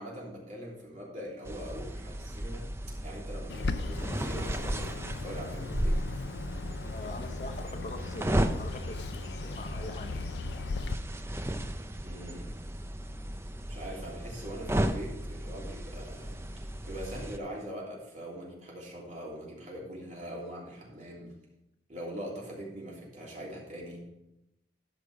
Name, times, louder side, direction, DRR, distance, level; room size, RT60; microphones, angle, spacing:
voice 1, 0.0-2.7 3.0-6.0 12.0-12.5 13.7-16.4 16.8-21.3 21.9-24.0, equal, 45° right, -4 dB, 3.2 m, -42 dB
sound 1, 1.5-17.4, right 1 dB, 15° right, 0.5 m, -35 dB
Bird, 3.5-11.0, left 4 dB, 75° left, 0.5 m, -38 dB
voice 2, 6.9-10.2, left 2 dB, 40° left, 6 dB, 0.8 m, -43 dB
13.0 x 5.2 x 4.9 m, 0.88 s
head